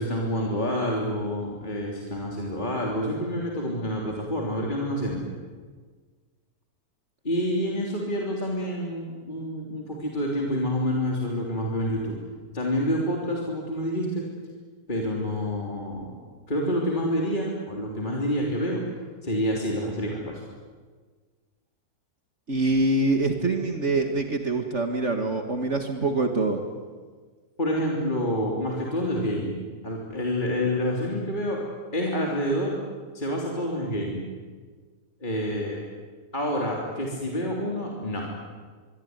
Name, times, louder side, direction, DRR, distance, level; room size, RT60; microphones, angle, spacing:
voice 1, 0.0-5.2 7.2-12.2 12.5-14.3 14.9-16.2 16.5-18.8 19.2-20.4 27.6-31.6 31.9-32.8 33.1-34.3 35.2-35.8 36.3-38.3, equal, 30° left, -2 dB, 3.7 m, -28 dB
voice 2, 22.5-26.6, right 2 dB, 50° right, 5 dB, 2.2 m, -25 dB
25.0 x 23.5 x 9.7 m, 1.5 s
omnidirectional pair, 1.6 m